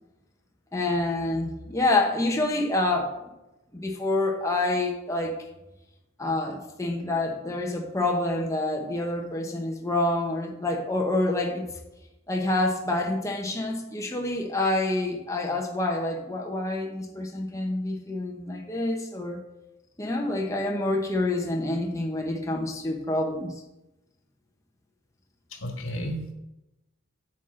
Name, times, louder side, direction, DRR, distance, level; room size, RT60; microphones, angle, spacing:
voice 1, 0.7-3.1 3.7-5.4 6.2-11.6 12.3-19.4 20.0-23.5, left 2 dB, 15° left, 1 dB, 1.0 m, -27 dB
voice 2, 25.5-26.3, equal, 85° left, 3 dB, 1.6 m, -33 dB
8.4 x 7.2 x 3.8 m, 0.95 s
head